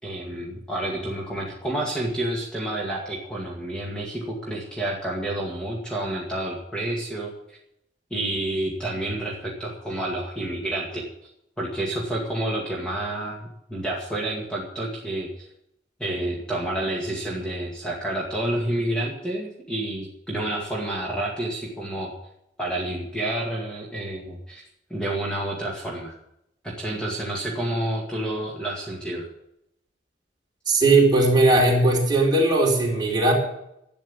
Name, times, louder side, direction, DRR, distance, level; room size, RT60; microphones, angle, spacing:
voice 1, 0.0-7.6 8.1-11.0 11.6-15.5 16.0-22.1 22.6-24.6 24.9-26.1 26.6-29.3, right 1 dB, 5° left, -3 dB, 2.1 m, -29 dB
voice 2, 30.7-33.3, right 2 dB, 25° right, -2 dB, 4.4 m, -18 dB
12.0 x 9.2 x 8.8 m, 0.80 s
head